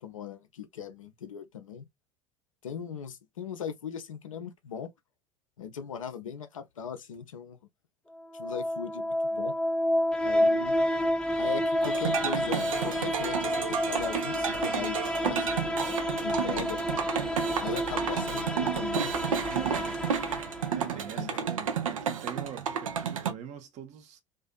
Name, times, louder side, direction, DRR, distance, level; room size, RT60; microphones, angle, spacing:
voice 1, 0.0-1.9 2.6-4.9 5.6-7.6 8.3-9.5 10.2-10.7 11.3-15.8 16.2-16.8 17.6-19.1 21.2-21.4, left 7 dB, 75° left, 0.5 m, -39 dB
sound 1, 8.2-21.1, equal, 5° left, 0.4 m, -30 dB
sound 2, 11.8-23.3, right 7 dB, 75° right, 0.5 m, -32 dB
voice 2, 19.5-20.0 20.7-24.2, right 8 dB, 45° right, 0.7 m, -43 dB
2.5 x 2.4 x 2.2 m
figure-of-eight pair, 70°, 17 cm